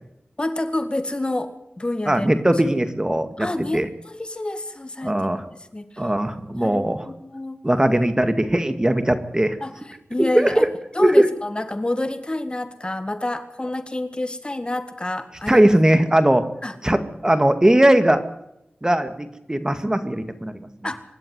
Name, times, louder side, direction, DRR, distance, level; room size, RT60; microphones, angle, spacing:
voice 1, 0.4-1.5 1.8-2.3 3.4-5.1 5.7-6.1 6.5-7.6 9.6-9.7 10.1-10.7 10.9-15.7 16.6-16.8 20.8-21.0, left 1 dB, 25° left, 9 dB, 1.9 m, -28 dB
voice 2, 2.1-3.5 3.7-3.9 5.0-5.4 6.0-7.0 7.6-9.6 10.2-10.7 11.0-11.3 15.5-16.5 16.8-18.2 18.8-20.7, right 1 dB, 20° right, 9 dB, 2.0 m, -19 dB
25.0 x 11.5 x 9.5 m, 0.83 s
wide cardioid pair, 65°, 4 cm